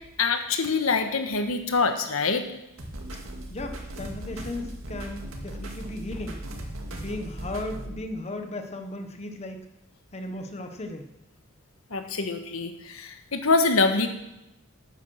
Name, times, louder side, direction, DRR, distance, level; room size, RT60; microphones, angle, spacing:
voice 1, 0.2-2.4 11.9-14.1, left 4 dB, 80° left, 7 dB, 1.3 m, -25 dB
sound 1, 2.8-7.9, right 1 dB, 70° right, 2.2 m, -38 dB
voice 2, 3.5-6.5 6.9-9.6 10.1-11.1, left 2 dB, 30° left, 5 dB, 1.0 m, -36 dB
12.0 x 9.3 x 6.3 m, 0.89 s
head